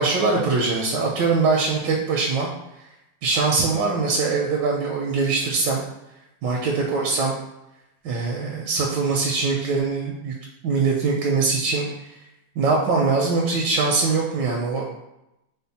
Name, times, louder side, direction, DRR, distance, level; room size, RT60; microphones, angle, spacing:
voice 1, 0.0-2.5 3.2-5.8 6.4-7.3 8.0-10.3 10.6-11.9 12.6-14.8, right 4 dB, 85° right, -1 dB, 1.3 m, -22 dB
4.3 x 2.1 x 4.0 m, 0.89 s
omnidirectional pair, 1.9 m